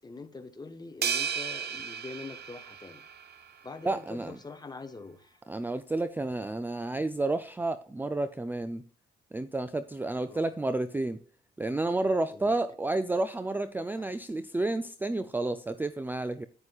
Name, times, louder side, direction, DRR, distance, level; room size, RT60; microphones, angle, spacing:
voice 1, 0.0-3.0 3.6-5.4 10.3-10.4 12.3-12.6 14.0-14.1, left 3 dB, 20° left, 1.1 m, -44 dB
sound 1, 1.0-3.5, right 7 dB, 55° right, 0.9 m, -34 dB
voice 2, 3.9-4.4 5.5-8.8 9.3-11.2 11.6-16.5, right 2 dB, 10° right, 0.4 m, -30 dB
9.7 x 9.6 x 2.4 m
cardioid pair, 90°, 20 cm